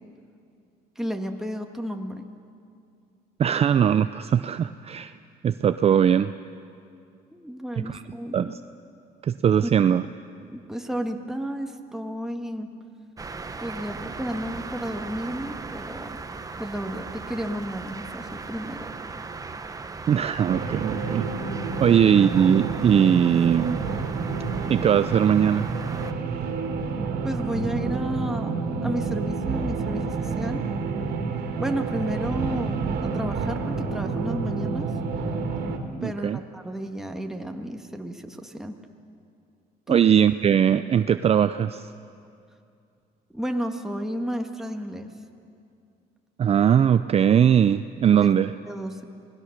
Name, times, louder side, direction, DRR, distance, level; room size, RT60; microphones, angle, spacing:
voice 1, 1.0-2.3 7.3-8.5 9.6-10.0 10.4-12.7 13.6-16.2 16.6-18.9 27.2-30.6 31.6-34.9 36.0-38.8 39.9-40.0 43.3-45.1 48.2-48.3 48.6-49.1, equal, 5° right, 3 dB, 1.8 m, -32 dB
voice 2, 3.4-5.1 5.4-6.3 7.9-8.0 8.3-8.6 9.2-10.0 20.1-21.3 21.8-23.8 24.7-25.7 36.0-36.4 39.9-41.9 46.4-48.5, right 8 dB, 35° right, 12 dB, 0.5 m, -20 dB
sound 1, 13.2-26.1, right 4 dB, 20° right, 1.1 m, -38 dB
sound 2, 20.5-35.8, right 4 dB, 75° right, 2.4 m, -29 dB
27.0 x 19.5 x 6.6 m, 2.4 s
cardioid pair, 110°, 17 cm